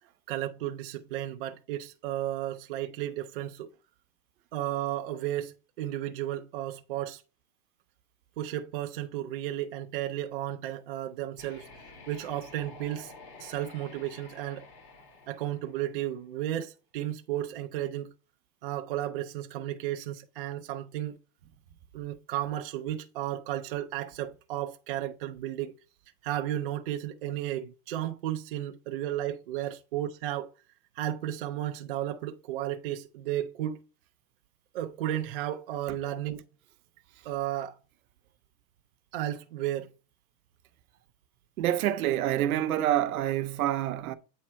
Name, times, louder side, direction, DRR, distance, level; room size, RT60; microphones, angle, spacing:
voice 1, 0.3-3.7 4.5-7.2 8.4-11.7 12.1-13.1 13.4-14.7 15.3-18.1 18.6-21.2 21.9-25.7 26.2-30.5 31.0-33.8 34.7-36.4 37.2-37.8 39.1-39.9, right 12 dB, 40° right, 0.4 m, -33 dB
sound 1, 11.3-16.3, left 3 dB, 40° left, 2.0 m, -50 dB
voice 2, 41.6-44.1, right 12 dB, 60° right, 0.8 m, -27 dB
8.6 x 3.6 x 4.4 m
supercardioid pair, 165°, 48 cm